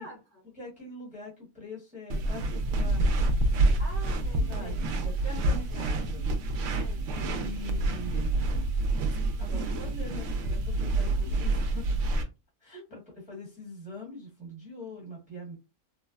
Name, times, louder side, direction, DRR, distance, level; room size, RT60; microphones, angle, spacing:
voice 1, 0.0-0.4 3.8-4.9 5.7-5.8 6.8-7.3, equal, 55° left, -1 dB, 1.1 m, -47 dB
voice 2, 0.6-3.0 4.5-6.3 7.2-8.3 9.4-12.1 12.6-15.5, left 1 dB, 5° right, -4 dB, 1.0 m, -43 dB
sound 1, 2.1-12.2, right 2 dB, 65° right, 0.8 m, -28 dB
3.3 x 2.0 x 2.3 m, 0.27 s
omnidirectional pair, 1.6 m